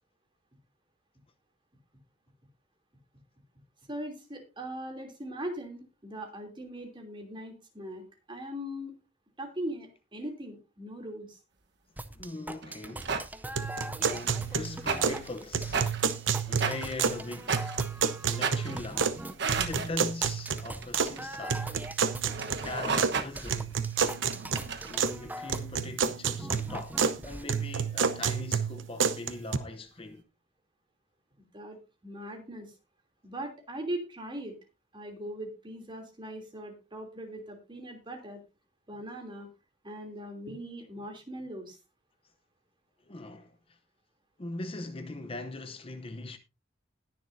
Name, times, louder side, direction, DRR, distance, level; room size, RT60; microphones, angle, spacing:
voice 1, 3.9-8.9 9.4-11.4 31.4-31.8 32.0-32.7 33.2-34.6 34.9-38.4 38.9-39.5 39.8-41.8, right 1 dB, 25° right, 3.0 m, -40 dB
sound 1, 12.0-27.4, right 1 dB, 10° right, 0.6 m, -42 dB
voice 2, 12.1-13.1 14.0-15.8 16.3-19.1 19.5-21.7 22.6-23.7 24.8-30.2 43.1-43.8 44.4-46.4, left 2 dB, 30° left, 0.8 m, -40 dB
sound 2, 12.6-13.3 14.0-19.9 20.4-25.0, right 5 dB, 65° right, 1.2 m, -35 dB
sound 3, 13.6-15.2 15.5-17.2 17.5-19.2 19.5-21.1 21.5-23.1 23.5-25.2 25.5-27.2 27.5-29.6, right 6 dB, 90° right, 0.9 m, -30 dB
20.0 x 6.9 x 2.7 m
head